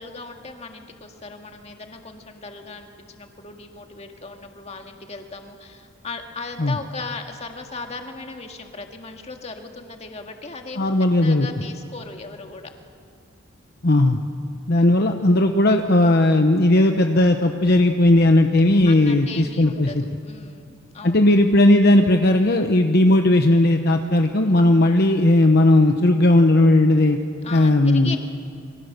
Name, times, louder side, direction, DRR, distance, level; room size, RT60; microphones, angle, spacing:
voice 1, 0.0-12.7 18.8-20.0 20.2-21.2 27.4-28.2, left 3 dB, 30° left, 4 dB, 1.9 m, -37 dB
voice 2, 10.8-11.5 13.8-14.2 14.7-20.0 21.0-27.2 27.5-28.2, left 1 dB, 50° left, 5 dB, 1.0 m, -16 dB
28.5 x 23.0 x 6.7 m, 2.5 s
head